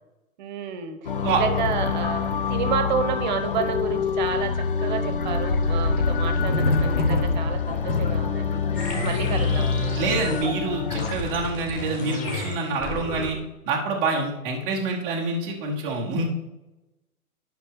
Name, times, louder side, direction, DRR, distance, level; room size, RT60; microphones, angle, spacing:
voice 1, 0.4-9.7, right 7 dB, 30° right, 8 dB, 0.9 m, -30 dB
sound 1, 1.0-11.1, left 6 dB, 40° left, 0.4 m, -26 dB
sound 2, 1.6-11.8, left 2 dB, 90° left, 1.2 m, -30 dB
sound 3, 8.8-10.5 10.9-13.5, left 1 dB, 15° left, 1.3 m, -31 dB
voice 2, 10.0-13.4 13.7-16.3, right 3 dB, 10° right, -5 dB, 0.5 m, -26 dB
11.5 x 5.6 x 3.5 m, 0.98 s
figure-of-eight pair, 120°, 44 cm